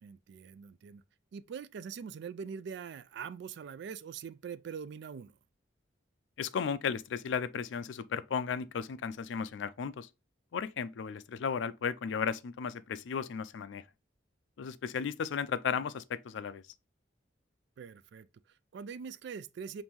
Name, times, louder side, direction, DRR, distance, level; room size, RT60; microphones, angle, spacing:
voice 1, 0.0-1.0 1.3-5.4 17.8-19.8, right 6 dB, 65° right, 0.3 m, -43 dB
voice 2, 6.4-10.1 10.5-13.8 14.6-16.6, left 6 dB, 70° left, 0.4 m, -35 dB
5.3 x 2.6 x 2.9 m
head